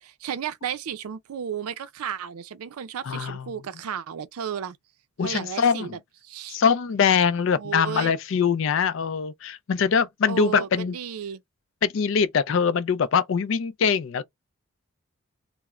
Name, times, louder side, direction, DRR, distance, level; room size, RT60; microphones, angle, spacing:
voice 1, 0.0-4.8 5.2-6.6 7.5-8.1 10.3-11.4, right 8 dB, 85° right, 0.4 m, -34 dB
voice 2, 3.0-3.5 5.2-5.9 6.5-11.0 11.8-14.2, left 6 dB, 60° left, 0.4 m, -23 dB
2.3 x 2.0 x 2.9 m
head